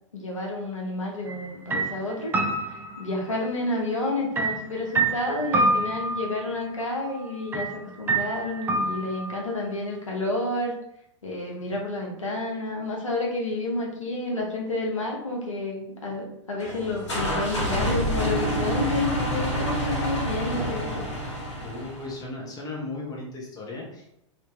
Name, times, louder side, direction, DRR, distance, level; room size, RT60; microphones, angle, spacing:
voice 1, 0.1-2.3 3.0-10.7 11.2-21.0, left 2 dB, 80° left, -2 dB, 0.9 m, -30 dB
sound 1, 1.3-1.5 1.7-3.6 4.4-6.4 7.5-7.7 8.1-9.4, right 2 dB, 15° right, 0.4 m, -27 dB
sound 2, 16.6-22.2, equal, 65° left, 1.2 m, -28 dB
voice 2, 21.6-24.1, left 2 dB, 25° left, -3 dB, 1.2 m, -36 dB
3.1 x 2.9 x 3.1 m, 0.78 s
figure-of-eight pair, 95°, 16 cm